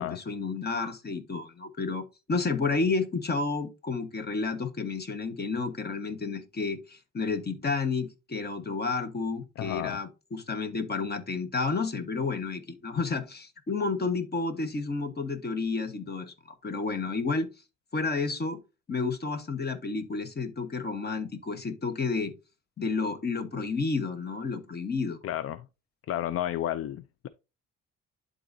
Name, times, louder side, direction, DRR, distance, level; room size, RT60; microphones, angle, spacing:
voice 1, 0.0-16.3 16.6-17.5 17.9-18.6 18.9-22.3 22.8-25.2, left 4 dB, 35° left, 1.3 m, -31 dB
voice 2, 9.6-10.0 25.2-25.7 26.1-27.3, left 12 dB, 50° left, 0.4 m, -32 dB
11.5 x 4.0 x 2.7 m
cardioid pair, 90°, 30 cm